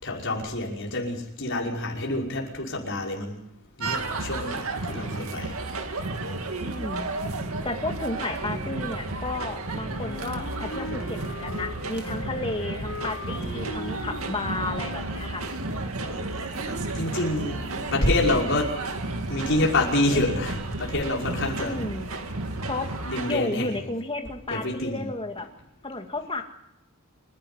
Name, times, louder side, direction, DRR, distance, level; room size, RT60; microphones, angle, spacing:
voice 1, 0.0-3.4 3.8-5.5 16.1-16.3 16.5-18.7 19.3-21.8 23.0-23.8 24.5-25.1, left 2 dB, 60° left, -2 dB, 5.6 m, -27 dB
sound 1, 3.8-23.3, right 2 dB, 80° right, 2.3 m, -32 dB
voice 2, 6.6-7.1 7.6-15.5 21.6-22.1 22.7-22.9 23.3-25.5 25.8-26.4, left 2 dB, 25° left, 4 dB, 2.2 m, -32 dB
Wind instrument woodwind instrument, 9.9-15.7, left 2 dB, 85° left, 5.4 m, -39 dB
28.5 x 11.5 x 9.7 m, 0.81 s
head